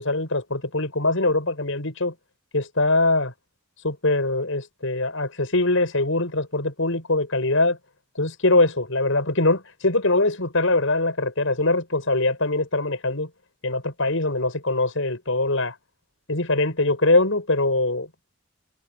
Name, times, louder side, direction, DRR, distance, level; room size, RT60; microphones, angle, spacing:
voice 1, 0.0-2.1 2.5-3.3 3.8-7.8 8.2-13.3 13.6-15.7 16.3-18.1, left 2 dB, 70° left, 7.4 m, -22 dB
head